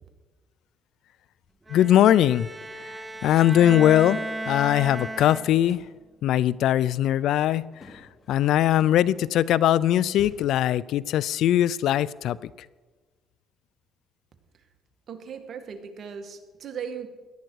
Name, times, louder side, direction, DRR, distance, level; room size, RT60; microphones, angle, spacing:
voice 1, 1.7-2.5 2.8-4.2 4.5-5.8 6.2-12.5, left 12 dB, 75° left, 20 dB, 0.4 m, -21 dB
Bowed string instrument, 1.7-5.8, right 1 dB, 20° right, 0.9 m, -35 dB
sound 1, 5.6-6.0 7.7-9.2 10.1-10.6, left 3 dB, 35° left, 3.1 m, -50 dB
voice 2, 15.1-17.1, right 7 dB, 55° right, 6 dB, 1.8 m, -37 dB
17.5 x 11.5 x 4.7 m, 1.3 s
cardioid pair, 85°, 0 cm